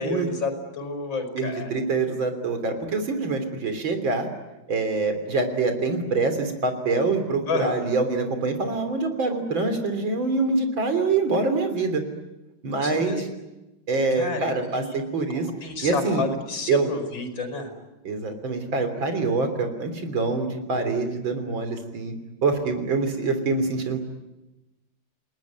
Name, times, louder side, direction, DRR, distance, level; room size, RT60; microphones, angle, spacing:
voice 1, 0.0-1.7 7.5-7.7 12.8-13.3 14.1-15.0 15.3-17.7, left 3 dB, 70° left, 5 dB, 5.9 m, -30 dB
voice 2, 1.3-4.3 4.7-12.0 12.6-13.3 13.9-15.5 15.8-16.3 16.7-16.9 18.0-22.1 22.4-24.0, right 3 dB, 75° right, 8 dB, 4.0 m, -25 dB
29.5 x 19.5 x 9.5 m, 1.0 s
omnidirectional pair, 2.2 m